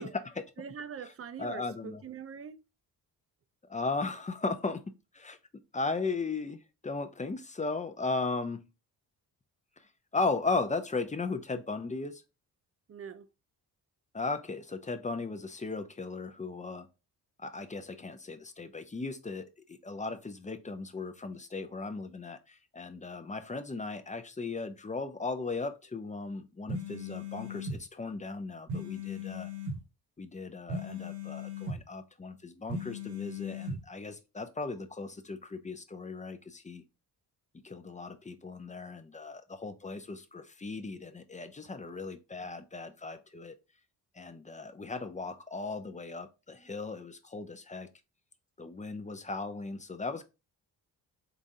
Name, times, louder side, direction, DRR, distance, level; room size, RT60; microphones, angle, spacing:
voice 1, 0.0-0.4 1.0-1.1 1.4-2.0 3.7-4.8 5.1-5.4 5.7-8.7 9.8-12.2 14.1-16.9 17.4-29.5 30.2-36.8 37.6-43.6 44.1-47.9 48.6-50.2, left 3 dB, 20° left, 0.5 m, -37 dB
voice 2, 0.6-2.6 12.9-13.3, right 7 dB, 35° right, 0.5 m, -43 dB
sound 1, 26.7-27.8 28.7-29.8 30.7-31.8 32.7-33.8, left 3 dB, 75° right, 1.1 m, -37 dB
3.8 x 3.6 x 2.7 m
cardioid pair, 70°, 40 cm